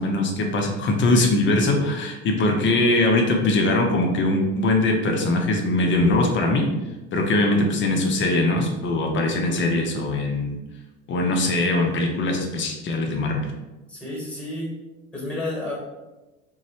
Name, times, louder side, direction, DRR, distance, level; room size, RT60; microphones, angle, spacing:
voice 1, 0.0-6.7 7.1-10.6 11.1-13.5, left 2 dB, 30° left, 1 dB, 0.6 m, -21 dB
voice 2, 13.9-14.8 15.1-15.7, left 1 dB, 5° left, -4 dB, 1.2 m, -30 dB
3.0 x 2.2 x 2.8 m, 1.1 s
hypercardioid pair, 70°, 37 cm